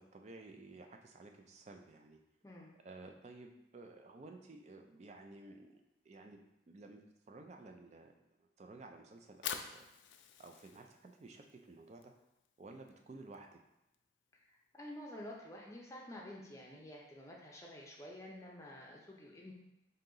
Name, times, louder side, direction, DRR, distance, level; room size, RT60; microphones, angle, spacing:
voice 1, 0.0-2.2 2.8-6.4 6.7-8.1 8.4-9.9 10.4-12.1 12.6-13.6, right 2 dB, 35° right, 4 dB, 0.4 m, -54 dB
Fire, 9.1-15.3, left 8 dB, 75° left, 0.3 m, -49 dB
voice 2, 14.3-19.5, left 1 dB, 15° left, -2 dB, 0.6 m, -50 dB
3.9 x 2.8 x 3.8 m, 0.89 s
head